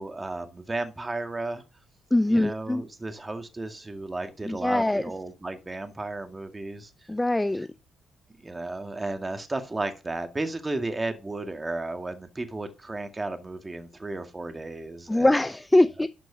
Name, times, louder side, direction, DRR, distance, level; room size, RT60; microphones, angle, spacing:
voice 1, 0.0-1.6 2.3-6.9 8.4-15.3, right 2 dB, 25° right, 2.0 m, -33 dB
voice 2, 2.1-2.8 4.4-5.1 7.1-7.7 15.1-16.1, left 1 dB, 15° left, 0.5 m, -22 dB
11.5 x 6.1 x 2.8 m
hypercardioid pair, 45°, 0 cm